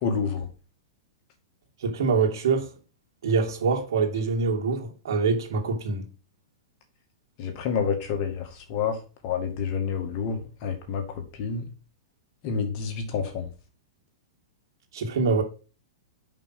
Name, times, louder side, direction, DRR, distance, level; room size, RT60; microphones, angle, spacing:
voice 1, 0.0-0.5 7.4-8.4 8.7-8.9 9.2-11.0 11.4-11.6 12.4-13.4, left 6 dB, 45° left, 2.2 m, -28 dB
voice 2, 1.8-2.7 3.2-6.1 14.9-15.4, right 4 dB, 70° right, 2.5 m, -25 dB
5.9 x 5.5 x 5.9 m
hypercardioid pair, 135°, 2 cm